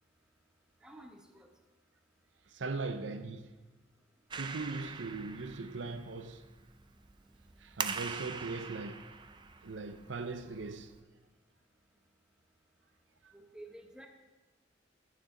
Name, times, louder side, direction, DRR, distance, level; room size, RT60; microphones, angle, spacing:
voice 1, 0.8-1.5 4.3-4.5 13.3-14.1, right 1 dB, 5° right, 1.0 m, -51 dB
voice 2, 2.5-3.5 4.4-6.5 7.6-9.0 9.6-10.9 13.2-13.3, right 3 dB, 75° right, 0.6 m, -40 dB
Clapping, 4.3-11.0, right 5 dB, 25° right, 0.4 m, -43 dB
16.0 x 6.8 x 3.8 m
head